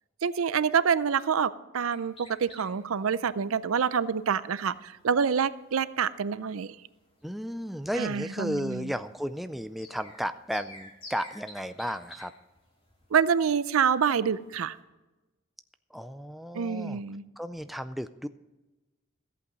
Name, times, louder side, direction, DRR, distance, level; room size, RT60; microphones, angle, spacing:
voice 1, 0.2-6.7 8.0-8.9 13.1-14.8 16.5-17.2, right 7 dB, 90° right, 16 dB, 0.5 m, -27 dB
sound 1, 1.9-14.8, left 1 dB, 25° left, 2.8 m, -53 dB
voice 2, 7.2-12.3 15.9-17.0 17.4-18.3, equal, ahead, 10 dB, 0.3 m, -34 dB
14.0 x 8.4 x 5.3 m, 1.1 s
head